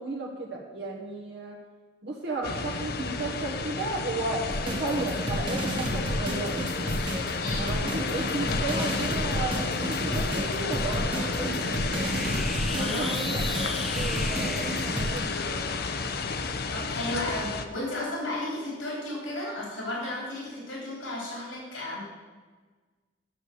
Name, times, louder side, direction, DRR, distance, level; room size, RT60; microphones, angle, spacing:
voice 1, 0.0-1.6 2.0-6.6 7.6-11.7 12.6-13.4 13.7-15.6, right 2 dB, 60° right, -1 dB, 1.3 m, -34 dB
sound 1, 2.4-17.7, left 4 dB, 55° left, 0.7 m, -31 dB
sound 2, 4.5-15.2, right 1 dB, 25° right, 1.4 m, -32 dB
voice 2, 7.4-7.8 12.7-13.4 16.7-22.0, left 1 dB, 85° left, -4 dB, 3.6 m, -34 dB
sound 3, 10.0-17.7, equal, ahead, 0.3 m, -40 dB
9.5 x 7.1 x 6.8 m, 1.4 s
head